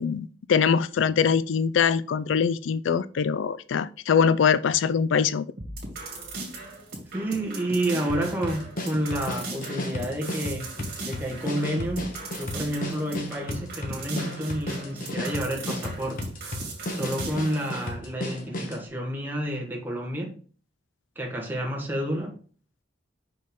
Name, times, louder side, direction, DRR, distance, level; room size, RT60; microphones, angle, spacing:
voice 1, 0.0-5.5, left 6 dB, 85° left, 0.4 m, -23 dB
sound 1, 5.6-18.0, right 2 dB, 55° right, 2.3 m, -39 dB
voice 2, 7.1-10.8 11.0-12.1 12.4-16.3 16.9-20.4 21.1-22.4, right 1 dB, 10° right, 1.4 m, -30 dB
sound 2, 8.1-18.8, left 1 dB, 50° left, 1.2 m, -34 dB
5.7 x 5.2 x 3.6 m
head